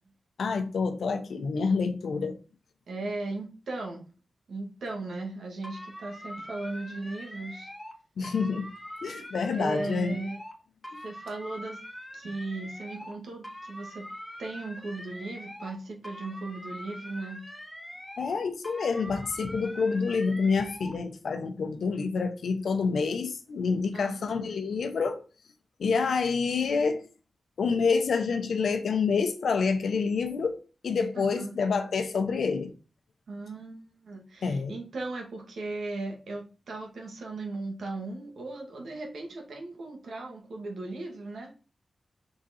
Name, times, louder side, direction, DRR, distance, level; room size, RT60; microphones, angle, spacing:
voice 1, 0.4-2.4 8.2-8.7 9.0-10.2 18.2-25.2 25.8-27.0 27.6-32.7 34.4-34.8, left 5 dB, 90° left, 0.8 m, -28 dB
voice 2, 2.9-4.1 4.5-7.7 9.5-10.4 11.0-11.8 12.1-14.1 14.4-17.4 23.9-24.5 31.1-31.5 33.3-41.5, right 2 dB, 90° right, 1.7 m, -37 dB
sound 1, 5.6-8.0 8.2-10.6 10.8-13.2 13.4-15.8 16.0-18.4 18.6-21.0, equal, 10° left, 1.6 m, -43 dB
5.9 x 3.8 x 4.2 m
cardioid pair, 60°, 0 cm